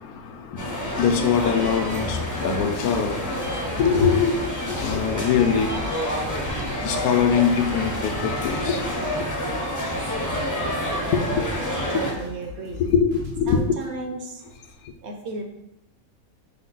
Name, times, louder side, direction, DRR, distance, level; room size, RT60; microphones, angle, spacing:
sound 1, 0.6-12.1, equal, 20° left, 0.5 m, -28 dB
voice 1, 0.9-3.5 3.8-5.7 6.8-8.8 11.1-11.4 12.8-13.7, left 6 dB, 80° left, 5 dB, 1.1 m, -22 dB
sound 2, 0.9-14.0, left 4 dB, 90° right, 1.5 m, -41 dB
voice 2, 11.9-12.8 13.5-14.4 15.0-15.4, right 3 dB, 60° right, 2 dB, 0.7 m, -34 dB
5.7 x 2.2 x 3.9 m, 0.83 s
omnidirectional pair, 1.6 m